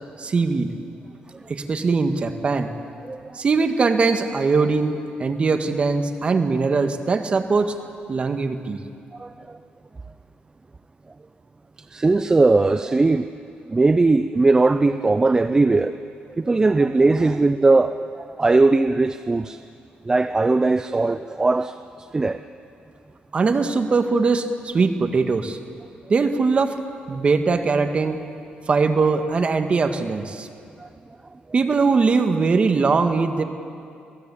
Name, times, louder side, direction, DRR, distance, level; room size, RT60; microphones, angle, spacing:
voice 1, 0.2-0.7 1.5-2.7 3.4-7.7 8.1-8.8 23.3-25.6 26.1-26.8 27.1-28.2 28.7-30.5 31.5-33.4, right 4 dB, 35° right, 7 dB, 1.8 m, -21 dB
voice 2, 9.2-9.6 11.9-13.3 13.7-16.0 16.4-19.6 20.0-22.4 30.8-30.9, right 3 dB, 20° right, 11 dB, 0.6 m, -19 dB
27.0 x 18.5 x 8.6 m, 2.5 s
cardioid pair, 100°, 3 cm